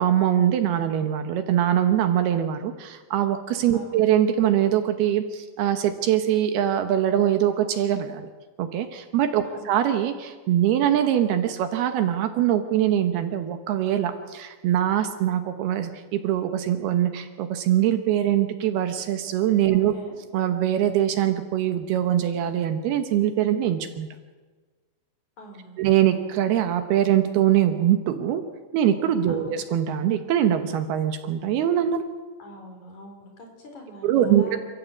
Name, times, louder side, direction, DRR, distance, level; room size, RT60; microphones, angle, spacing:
voice 1, 0.0-8.3 8.6-20.0 20.3-24.1 25.8-28.4 28.7-32.0 34.0-34.6, right 11 dB, 70° right, 8 dB, 2.9 m, -23 dB
voice 2, 3.7-4.0 9.4-9.7 19.7-20.1 25.4-25.8 29.3-29.6 32.4-34.6, left 1 dB, 45° left, 3 dB, 4.9 m, -43 dB
27.5 x 14.5 x 8.3 m, 1.3 s
omnidirectional pair, 4.9 m